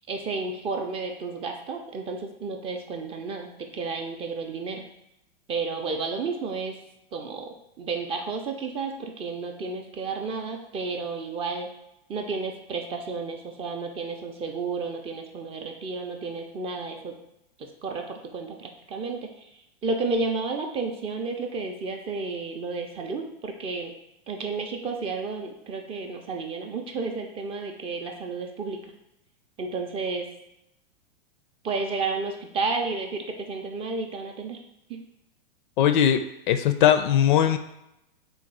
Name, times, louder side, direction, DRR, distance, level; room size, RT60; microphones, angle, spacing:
voice 1, 0.1-4.8 5.5-6.8 7.1-11.7 12.1-17.1 17.6-19.5 19.8-23.9 24.3-28.9 29.6-30.3 31.6-34.6 34.9-35.0, right 4 dB, 20° right, 3 dB, 0.4 m, -32 dB
voice 2, 35.8-36.2 36.5-37.6, left 10 dB, 55° left, 9 dB, 0.4 m, -19 dB
3.8 x 2.3 x 4.6 m, 0.83 s
hypercardioid pair, 105°, 29 cm